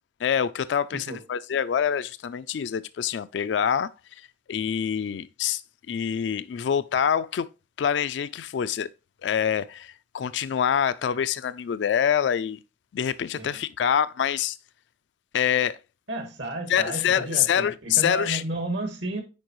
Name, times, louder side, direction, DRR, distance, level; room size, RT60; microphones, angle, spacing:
voice 1, 0.2-3.9 4.5-5.6 5.9-7.5 7.8-8.9 9.2-12.6 12.9-14.6 15.3-15.8 16.7-18.4, left 8 dB, 70° left, 0.3 m, -25 dB
voice 2, 16.1-19.2, right 2 dB, 80° right, 1.9 m, -32 dB
9.6 x 4.6 x 3.0 m
head